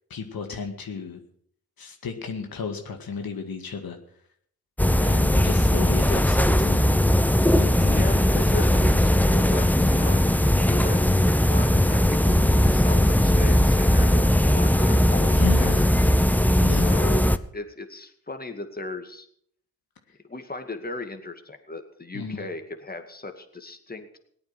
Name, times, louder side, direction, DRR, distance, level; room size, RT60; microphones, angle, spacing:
voice 1, 0.1-1.2 1.8-4.0 5.0-6.8 7.5-8.2 9.8-10.2 14.9-15.0 15.3-15.9 16.6-17.0 22.1-22.5, left 6 dB, 70° left, 4 dB, 2.0 m, -33 dB
sound 1, 4.8-17.4, left 1 dB, 5° left, 0.9 m, -19 dB
voice 2, 7.9-15.5 16.5-19.3 20.3-24.2, left 3 dB, 25° left, 6 dB, 2.3 m, -36 dB
18.0 x 8.9 x 6.1 m, 0.66 s
supercardioid pair, 40°, 37 cm